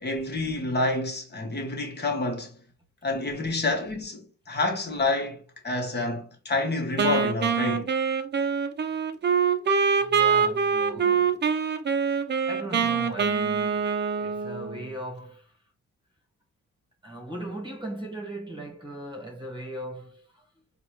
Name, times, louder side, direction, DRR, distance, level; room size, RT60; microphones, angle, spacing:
voice 1, 0.0-2.6 3.0-7.9 11.0-11.1, left 2 dB, 35° left, 1.2 m, -28 dB
Wind instrument woodwind instrument, 7.0-14.9, right 6 dB, 35° right, 0.6 m, -24 dB
voice 2, 10.0-11.3 12.4-13.9 14.2-15.5 17.0-20.4, right 1 dB, 15° right, 1.3 m, -38 dB
4.0 x 2.4 x 3.0 m
cardioid pair, 70°, 30 cm